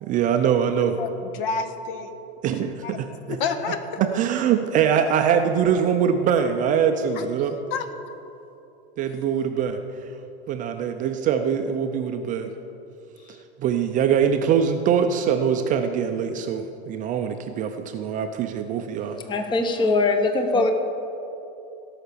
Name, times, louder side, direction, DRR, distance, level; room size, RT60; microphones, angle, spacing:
voice 1, 0.0-1.0 2.4-3.4 4.1-7.5 9.0-9.8 10.5-12.5 13.6-19.2, right 8 dB, 25° right, 6 dB, 0.4 m, -23 dB
voice 2, 1.0-2.1 2.6-3.0 3.3-3.8 7.1-7.2 7.7-7.9 13.2-13.4 20.5-20.7, left 5 dB, 55° left, 9 dB, 1.2 m, -29 dB
voice 3, 19.2-20.7, left 3 dB, 15° left, 6 dB, 0.8 m, -22 dB
17.5 x 5.8 x 6.8 m, 2.9 s
supercardioid pair, 145°, 33 cm